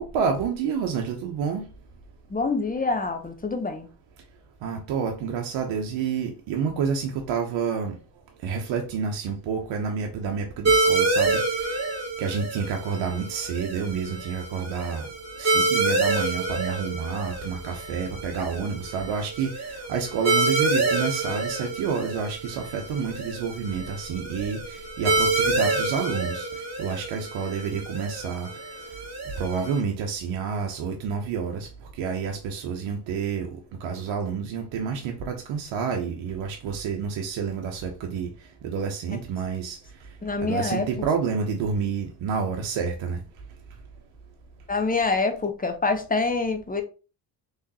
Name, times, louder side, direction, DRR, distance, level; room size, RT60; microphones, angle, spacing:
voice 1, 0.0-1.7 4.6-8.0 8.4-11.4 12.2-15.1 15.4-26.5 26.8-28.5 29.4-31.7 32.0-33.5 33.8-38.3 38.6-39.8 40.4-43.2, right 6 dB, 70° right, 0.8 m, -29 dB
voice 2, 2.3-3.9 40.2-40.9 44.7-46.8, left 3 dB, 20° left, 0.8 m, -26 dB
sound 1, 10.6-29.8, right 3 dB, 35° right, 1.8 m, -27 dB
3.6 x 3.2 x 2.8 m
supercardioid pair, 55°, 47 cm